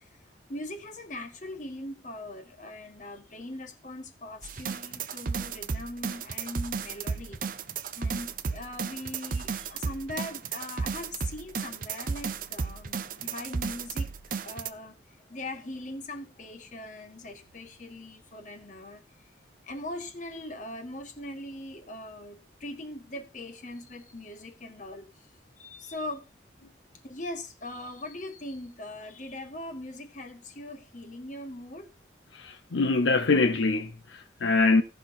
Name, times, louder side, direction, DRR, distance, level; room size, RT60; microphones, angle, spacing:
voice 1, 0.0-7.7 7.9-14.1 14.4-19.3 19.6-25.3 25.6-26.3 27.0-31.9, left 1 dB, 40° left, 1.5 m, -41 dB
sound 1, 4.4-14.7, right 5 dB, 45° right, 0.5 m, -34 dB
voice 2, 32.3-34.8, left 3 dB, 75° left, 0.7 m, -24 dB
15.5 x 5.9 x 4.1 m
head